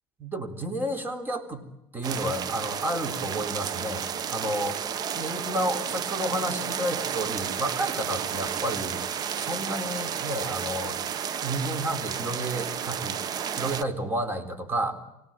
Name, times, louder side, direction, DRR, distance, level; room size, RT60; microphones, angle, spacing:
voice 1, 0.2-1.7 1.9-4.8 5.1-9.1 9.4-11.0 11.4-13.2 13.6-14.9, right 1 dB, 20° right, 8 dB, 4.0 m, -31 dB
sound 1, 2.0-13.8, right 8 dB, 45° right, 1.1 m, -32 dB
25.0 x 18.0 x 9.0 m, 0.91 s
supercardioid pair, 110°, 9 cm